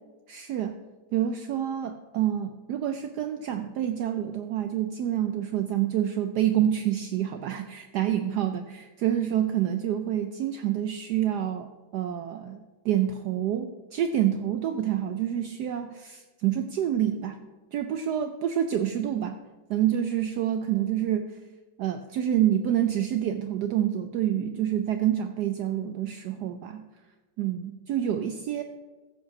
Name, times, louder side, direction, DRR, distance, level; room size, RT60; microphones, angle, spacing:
voice 1, 0.3-0.8 1.1-17.4 17.7-19.4 19.7-21.3 21.8-26.8 27.4-28.6, right 10 dB, 75° right, 8 dB, 0.9 m, -27 dB
14.5 x 5.3 x 5.9 m, 1.2 s
omnidirectional pair, 2.2 m